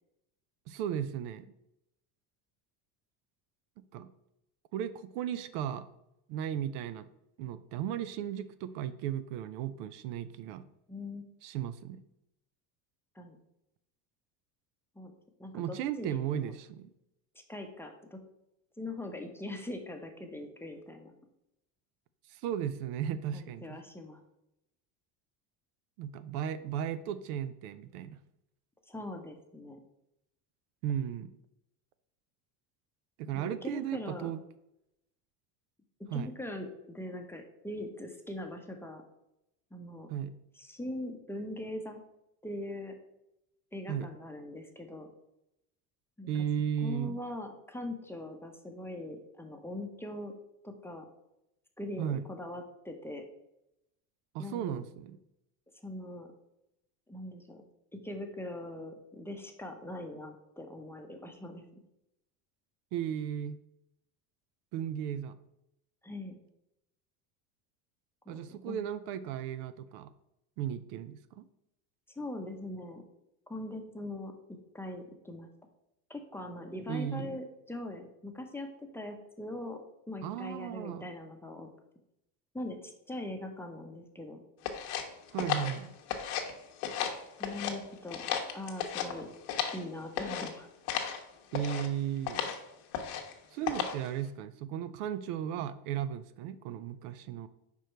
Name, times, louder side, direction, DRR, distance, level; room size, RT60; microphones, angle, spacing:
voice 1, 0.7-1.5 3.8-4.1 4.7-5.9 6.3-7.1 7.4-10.6 11.4-12.0 15.5-16.9 22.3-23.8 26.0-28.2 30.8-31.3 33.2-34.4 36.1-36.3 40.1-40.4 43.9-44.1 46.3-47.2 52.0-52.2 54.3-55.2 62.9-63.6 64.7-65.4 68.3-70.1 70.6-71.4 76.9-77.4 80.2-81.1 85.3-86.0 91.5-92.5 93.5-97.5, right 9 dB, 80° right, 13 dB, 0.6 m, -35 dB
voice 2, 10.9-11.2 13.2-13.4 15.0-15.1 15.4-16.5 17.5-18.2 18.8-21.1 23.3-24.2 28.9-29.8 33.3-34.3 36.1-39.0 39.7-40.1 40.6-42.0 42.4-42.9 43.7-45.1 46.2-46.5 46.8-50.3 50.6-51.1 51.8-53.2 54.4-54.9 55.8-56.3 57.1-57.6 58.0-61.6 66.0-66.4 68.3-68.8 72.2-73.0 73.5-74.3 74.7-75.5 76.1-81.7 82.5-84.4 87.4-88.2 88.5-89.3 89.7-90.7, left 1 dB, 5° left, 3 dB, 0.7 m, -41 dB
sound 1, 84.6-86.5 86.8-87.8 88.1-89.8 90.2-90.5 90.9-91.2 91.5-91.9 92.3-92.6 92.9-93.3 93.7-94.1, left 8 dB, 85° left, 1.1 m, -34 dB
5.2 x 4.8 x 4.5 m, 0.84 s
supercardioid pair, 125°, 45 cm